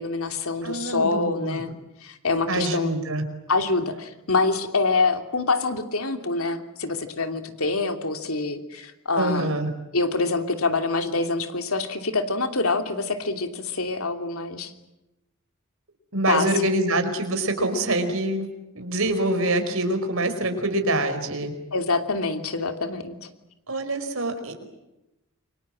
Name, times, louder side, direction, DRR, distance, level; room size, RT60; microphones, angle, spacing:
voice 1, 0.0-1.7 2.0-2.9 3.5-9.5 9.9-14.7 16.3-16.5 21.7-23.3, left 3 dB, 80° left, 7 dB, 3.0 m, -25 dB
voice 2, 0.6-1.7 2.5-3.2 9.2-9.7 16.1-18.5 18.7-21.5 23.7-24.6, right 1 dB, 70° right, 7 dB, 5.0 m, -25 dB
28.5 x 25.0 x 7.6 m, 0.93 s
head